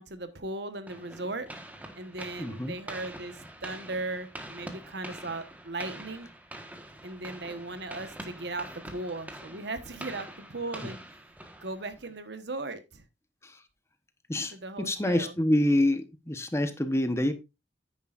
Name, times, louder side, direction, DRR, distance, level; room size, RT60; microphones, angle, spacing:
voice 1, 0.0-1.5 1.9-6.3 7.0-11.0 11.6-13.0 14.5-15.4, right 2 dB, 70° right, 1.2 m, -37 dB
sound 1, 0.9-12.1, right 1 dB, 10° right, 1.3 m, -45 dB
voice 2, 2.4-2.7 13.4-13.5 14.3-17.3, left 1 dB, 15° left, 1.0 m, -27 dB
10.0 x 9.3 x 2.5 m
head